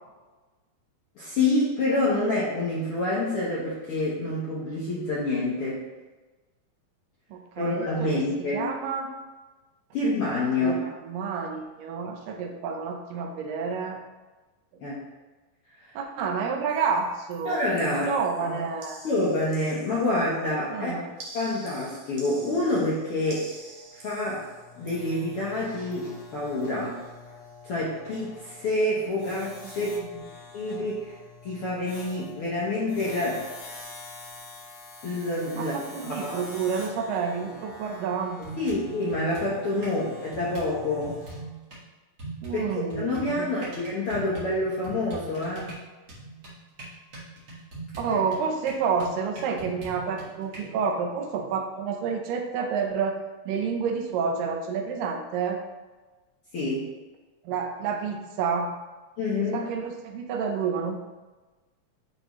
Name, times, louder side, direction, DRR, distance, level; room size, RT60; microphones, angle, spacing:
voice 1, 1.2-5.8 7.6-8.6 9.9-10.9 14.8-15.0 15.9-16.0 17.4-18.1 18.4-18.6 19.0-20.9 21.3-23.5 23.9-24.5 24.8-27.0 27.6-30.0 30.5-31.2 31.4-33.4 35.0-36.4 38.6-41.2 42.5-42.7 43.0-45.7 48.1-48.2 56.5-56.9 59.2-59.6, left 2 dB, 70° left, -6 dB, 1.3 m, -27 dB
voice 2, 7.3-9.1 10.6-14.0 14.7-14.8 16.0-19.0 20.7-21.1 29.6-30.3 35.5-38.5 42.4-43.5 48.0-53.2 53.5-55.6 57.4-58.7 59.4-61.0, right 6 dB, 90° right, 3 dB, 2.4 m, -29 dB
sound 1, 16.7-17.0 17.3-20.4 21.2-25.5 25.9-26.2 26.5-26.7, right 3 dB, 65° right, 2.4 m, -48 dB
sound 2, 22.2-41.4, left 3 dB, 35° left, 1.7 m, -47 dB
sound 3, 37.7-37.8 38.4-40.0 40.3-41.8 42.2-50.6, right 2 dB, 40° right, 1.6 m, -41 dB
9.8 x 3.5 x 3.1 m, 1.2 s
omnidirectional pair, 3.8 m